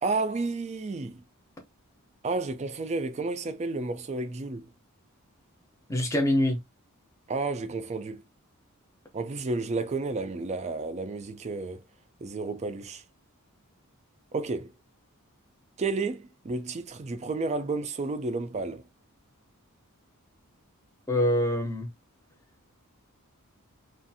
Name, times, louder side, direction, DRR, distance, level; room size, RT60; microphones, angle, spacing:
voice 1, 0.0-1.2 2.2-4.7 7.3-8.2 9.1-11.8 12.2-13.0 14.3-14.7 15.8-18.8, right 3 dB, 30° right, 0.4 m, -31 dB
voice 2, 5.9-6.6 21.1-21.9, left 1 dB, 15° left, 0.7 m, -24 dB
2.5 x 2.5 x 2.6 m
head